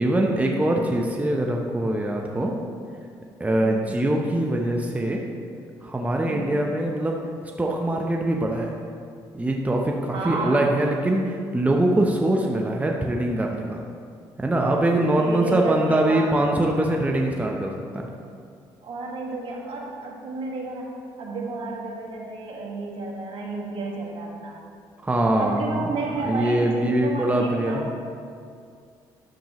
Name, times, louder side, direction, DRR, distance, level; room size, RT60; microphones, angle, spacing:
voice 1, 0.0-2.6 3.4-5.2 5.8-7.2 7.6-8.7 9.3-13.8 14.4-18.1 25.0-25.8 26.2-27.9, right 1 dB, 15° right, 0 dB, 0.9 m, -23 dB
voice 2, 3.6-4.0 6.3-6.6 10.1-10.7 15.2-16.4 18.8-20.9 21.2-24.6 25.4-27.9, right 3 dB, 60° right, -2 dB, 1.7 m, -31 dB
10.5 x 6.9 x 3.1 m, 2.3 s
supercardioid pair, 65°, 10 cm